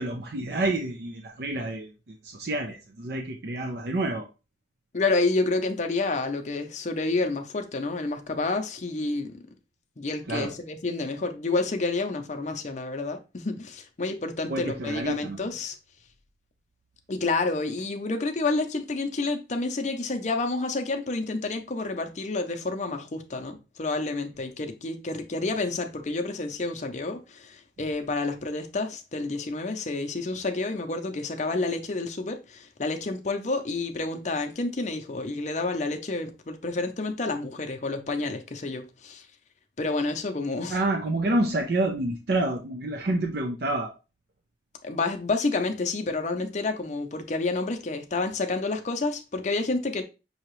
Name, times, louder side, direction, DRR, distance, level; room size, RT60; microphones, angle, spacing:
voice 1, 0.0-4.3 10.3-10.6 14.5-15.4 40.7-43.9, right 2 dB, 60° right, 0.5 m, -28 dB
voice 2, 4.9-9.4 10.0-15.7 17.1-39.3 39.8-40.8 44.8-50.0, left 3 dB, 40° left, 0.6 m, -29 dB
5.5 x 2.9 x 3.1 m
head